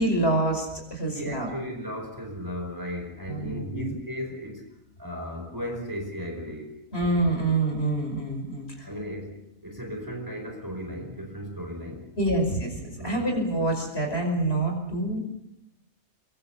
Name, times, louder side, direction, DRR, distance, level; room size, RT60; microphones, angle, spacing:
voice 1, 0.0-1.5 3.3-3.9 6.9-8.9 12.2-15.2, right 2 dB, 50° left, 3 dB, 5.7 m, -26 dB
voice 2, 1.1-4.7 5.0-6.7 8.8-12.1 13.0-13.3, equal, 15° right, 2 dB, 4.7 m, -36 dB
23.5 x 22.0 x 7.1 m, 0.84 s
omnidirectional pair, 1.4 m